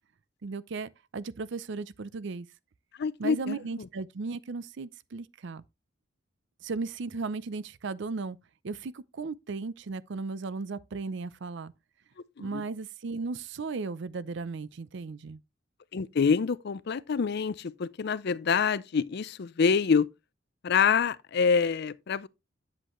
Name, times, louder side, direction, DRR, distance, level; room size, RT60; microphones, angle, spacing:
voice 1, 0.4-2.5 3.2-5.6 6.6-8.4 8.6-11.7 12.4-15.4, right 4 dB, 65° right, 0.5 m, -36 dB
voice 2, 3.0-3.6 12.4-12.6 15.9-20.1 20.6-22.3, left 6 dB, 60° left, 0.5 m, -26 dB
8.4 x 7.7 x 3.1 m
head